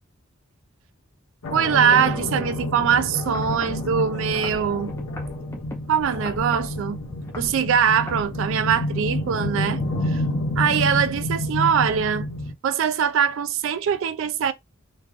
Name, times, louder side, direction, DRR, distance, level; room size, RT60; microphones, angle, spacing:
sound 1, 1.4-12.5, left 1 dB, 70° left, 1.0 m, -29 dB
voice 1, 1.5-4.9 5.9-7.0 7.4-10.2 10.6-12.3 12.6-14.5, right 7 dB, 60° right, 0.3 m, -22 dB
sound 2, 3.3-3.9 4.4-5.8 6.2-6.8 7.2-7.6 8.1-8.3 8.9-9.0, left 1 dB, 10° left, 0.5 m, -38 dB
3.2 x 2.4 x 3.3 m
head